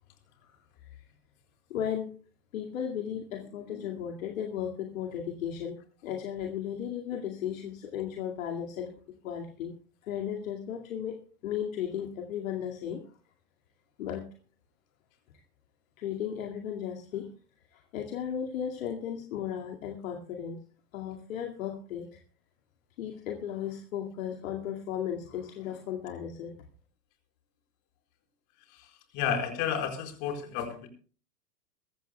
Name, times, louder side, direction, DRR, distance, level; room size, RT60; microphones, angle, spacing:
voice 1, 1.7-2.1 2.5-5.8 6.0-8.9 9.2-9.7 10.0-13.0 14.0-14.3 16.0-17.3 17.7-20.6 20.9-22.2 23.0-26.5, left 9 dB, 55° left, 2 dB, 2.3 m, -35 dB
voice 2, 28.7-30.9, left 8 dB, 40° left, 4 dB, 4.7 m, -32 dB
22.5 x 14.5 x 2.3 m, 0.40 s
figure-of-eight pair, 110°, 48 cm